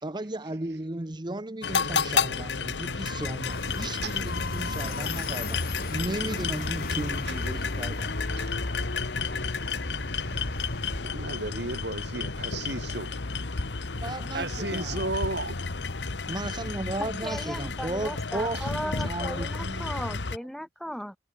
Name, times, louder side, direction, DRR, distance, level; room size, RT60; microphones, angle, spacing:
voice 1, 0.0-8.1 14.0-15.0 16.3-20.0, right 1 dB, 25° right, 1.1 m, -35 dB
sound 1, 1.6-20.4, left 4 dB, 85° left, 1.2 m, -32 dB
sound 2, 3.5-11.0, left 2 dB, 55° left, 4.8 m, -36 dB
voice 2, 11.0-13.2 14.3-15.6, right 2 dB, 70° right, 5.0 m, -34 dB
voice 3, 17.0-21.2, equal, ahead, 2.6 m, -36 dB
head